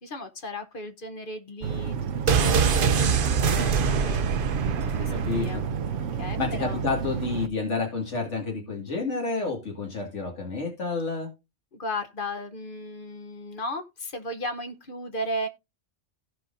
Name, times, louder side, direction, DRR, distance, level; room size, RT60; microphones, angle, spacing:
voice 1, 0.0-4.3 4.9-5.7 6.2-6.9 11.7-15.5, left 1 dB, 50° left, 1.0 m, -35 dB
sound 1, 1.6-7.5, right 6 dB, 80° right, 1.0 m, -31 dB
sound 2, 2.3-6.0 6.3-6.4, right 6 dB, 55° right, 0.8 m, -24 dB
voice 2, 5.1-5.6 6.4-11.3, left 4 dB, 75° left, 2.4 m, -30 dB
17.0 x 5.6 x 2.6 m
omnidirectional pair, 1.2 m